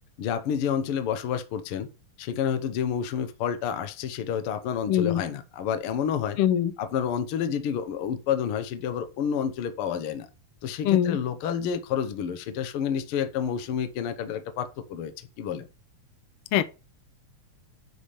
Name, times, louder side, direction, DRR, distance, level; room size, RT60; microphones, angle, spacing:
voice 1, 0.2-1.9 2.2-6.4 6.8-10.3 10.6-15.1 15.4-15.7, left 8 dB, 65° left, 1.5 m, -29 dB
voice 2, 4.9-5.2 6.4-6.7 10.8-11.2 16.5-16.6, left 11 dB, 90° left, 1.2 m, -22 dB
10.0 x 3.6 x 5.7 m
omnidirectional pair, 3.4 m